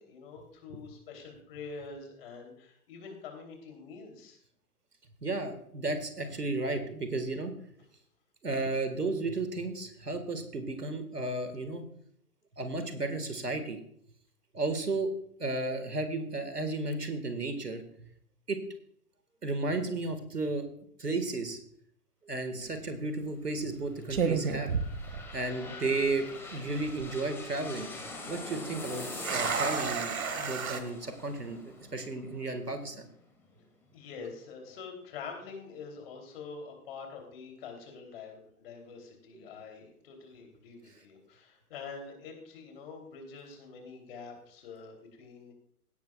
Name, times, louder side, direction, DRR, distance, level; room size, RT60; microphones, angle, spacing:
voice 1, 0.0-4.4 33.5-33.6 33.9-45.5, left 5 dB, 40° left, 2 dB, 3.3 m, -46 dB
voice 2, 5.2-7.5 8.4-11.8 12.6-13.8 14.5-15.1 15.4-17.8 18.5-18.6 19.4-20.6 21.0-21.6 22.2-24.7 25.3-27.9 28.3-33.1, right 2 dB, 80° right, 8 dB, 1.9 m, -33 dB
sound 1, 22.5-22.8 23.6-23.8 24.1-25.7 26.0-26.1 26.7-27.1 28.8-30.8, right 5 dB, 60° right, 1.4 m, -32 dB
sound 2, 23.8-33.4 33.9-34.0, left 3 dB, 5° left, 1.3 m, -44 dB
17.0 x 10.5 x 2.4 m, 0.68 s
figure-of-eight pair, 125°, 46 cm